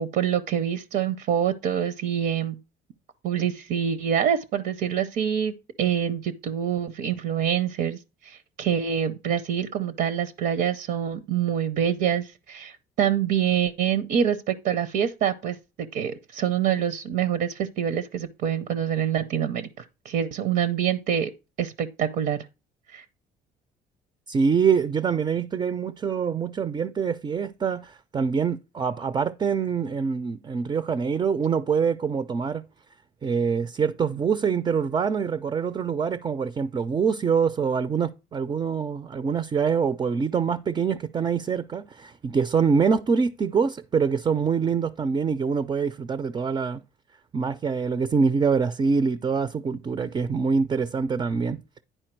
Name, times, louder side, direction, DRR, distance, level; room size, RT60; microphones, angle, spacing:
voice 1, 0.0-2.6 3.2-5.5 5.8-15.6 15.9-21.3 21.6-22.4 22.9-23.0, right 9 dB, 70° right, 0.6 m, -26 dB
voice 2, 24.3-32.6 33.2-46.8 47.3-51.6, right 6 dB, 25° right, 0.4 m, -25 dB
10.0 x 4.5 x 4.5 m
cardioid pair, 110°, 17 cm